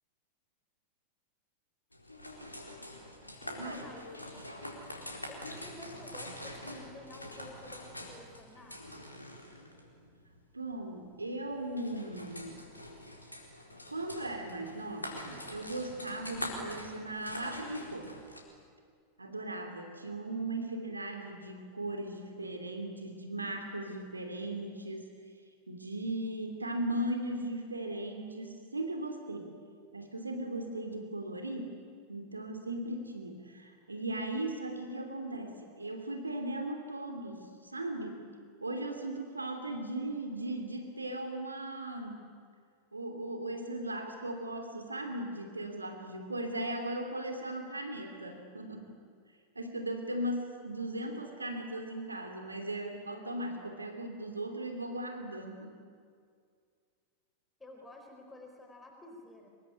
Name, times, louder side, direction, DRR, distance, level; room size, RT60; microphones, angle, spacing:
sound 1, 1.9-18.4, left 1 dB, 85° left, 4.3 m, -45 dB
voice 1, 3.4-4.1 5.3-8.9 57.6-59.5, left 2 dB, 10° left, 2 dB, 4.4 m, -51 dB
voice 2, 10.5-12.6 13.9-18.1 19.2-25.1 25.7-29.5 29.9-31.8 32.1-38.3 38.6-42.3 42.9-48.9 49.5-55.8, right 1 dB, 80° right, 5 dB, 3.0 m, -38 dB
25.0 x 22.0 x 10.0 m, 2.1 s
figure-of-eight pair, 90°, 0 cm